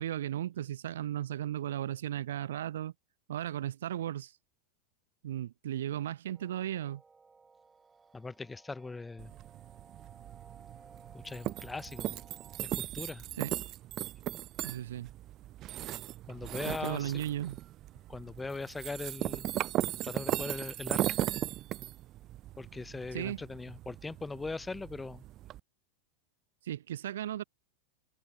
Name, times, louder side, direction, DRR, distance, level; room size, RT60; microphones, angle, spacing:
voice 1, 0.0-2.9 3.3-4.3 5.2-7.0 13.4-13.5 14.6-15.1 16.6-17.6 23.1-23.4 26.6-27.4, right 11 dB, 60° right, 0.8 m, -35 dB
sound 1, 6.3-12.6, right 4 dB, 15° right, 6.4 m, -59 dB
voice 2, 8.1-9.3 11.1-12.2 12.6-13.3 16.3-17.2 18.1-19.5 20.0-21.2 22.6-25.2, left 3 dB, 10° left, 1.1 m, -40 dB
sound 2, 9.2-25.6, right 14 dB, 35° right, 1.3 m, -38 dB
figure-of-eight pair, 90°, 0 cm